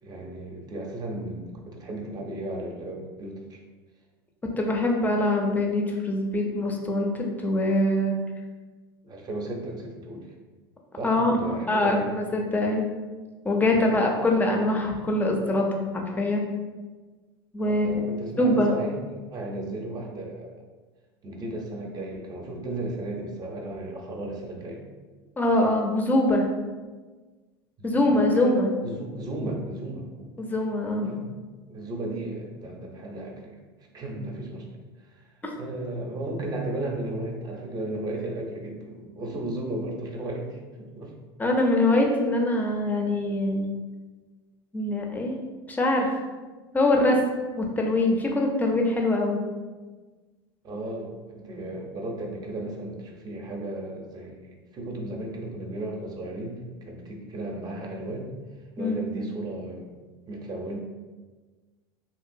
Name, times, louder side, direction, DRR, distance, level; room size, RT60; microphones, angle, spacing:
voice 1, 0.0-3.6 9.0-10.3 10.9-12.1 13.7-14.0 17.6-18.9 19.2-20.6 21.2-24.8 27.8-28.2 28.8-30.3 31.0-31.4 31.7-33.6 33.9-34.6 35.1-35.2 35.5-41.1 50.6-58.3 58.8-59.9 60.3-60.8, right 1 dB, 30° right, 0 dB, 0.6 m, -35 dB
voice 2, 4.6-8.2 11.0-12.9 13.4-16.4 17.5-17.9 18.4-18.7 25.4-26.5 27.8-28.7 30.4-31.1 41.4-43.7 44.7-45.4 45.7-46.1 46.7-47.2 47.6-49.4 58.8-59.0, left 1 dB, 15° left, 1 dB, 0.5 m, -23 dB
2.8 x 2.4 x 2.6 m, 1.3 s
hypercardioid pair, 90°, 13 cm